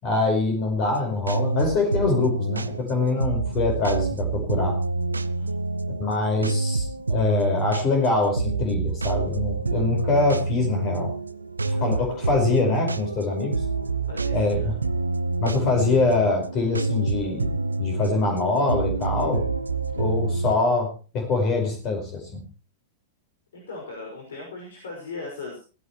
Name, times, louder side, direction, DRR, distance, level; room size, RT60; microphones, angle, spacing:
voice 1, 0.0-4.8 6.0-11.1 11.6-13.6 14.3-14.7 15.4-19.4 20.0-20.9 21.1-22.4, left 3 dB, 35° left, 3 dB, 5.0 m, -24 dB
sound 1, 0.9-20.5, right 3 dB, 80° right, 0.7 m, -27 dB
voice 2, 14.1-14.8 23.5-25.6, left 3 dB, 65° left, 1 dB, 5.7 m, -38 dB
18.0 x 16.5 x 3.1 m, 0.36 s
figure-of-eight pair, 95°, 0 cm